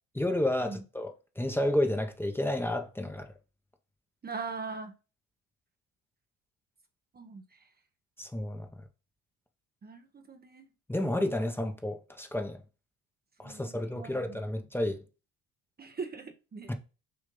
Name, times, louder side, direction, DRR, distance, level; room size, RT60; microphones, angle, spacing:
voice 1, 0.1-3.3 8.2-8.7 10.9-12.6 13.4-15.0 16.7-16.8, left 1 dB, 5° left, 0.9 m, -31 dB
voice 2, 4.2-4.9 7.1-7.4 9.8-10.7 13.4-14.4 15.8-16.7, right 4 dB, 25° right, 0.8 m, -41 dB
6.8 x 2.6 x 5.3 m
cardioid pair, 95°, 35 cm